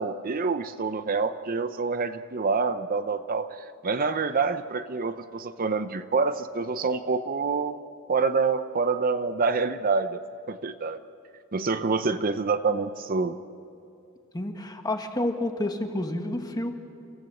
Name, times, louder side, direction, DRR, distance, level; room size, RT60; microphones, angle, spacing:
voice 1, 0.0-7.8 8.1-10.2 10.5-11.0 11.5-13.4, right 4 dB, 45° right, 11 dB, 0.7 m, -27 dB
voice 2, 14.3-16.7, left 1 dB, 20° left, 5 dB, 1.6 m, -29 dB
30.0 x 15.5 x 7.8 m, 2.6 s
head